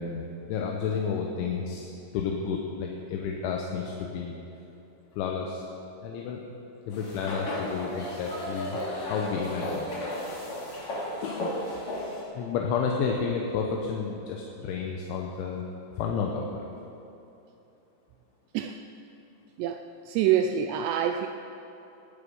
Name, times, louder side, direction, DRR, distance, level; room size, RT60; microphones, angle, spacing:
voice 1, 0.0-4.3 5.2-5.6 6.0-6.4 6.9-8.8 9.1-9.9 11.2-11.5 12.4-15.7 16.0-16.7, left 6 dB, 80° left, 0 dB, 3.3 m, -31 dB
sound 1, 6.9-12.2, left 1 dB, 45° left, 3.3 m, -34 dB
voice 2, 20.1-21.3, right 9 dB, 85° right, 6 dB, 2.5 m, -25 dB
19.0 x 10.5 x 5.4 m, 2.9 s
omnidirectional pair, 5.5 m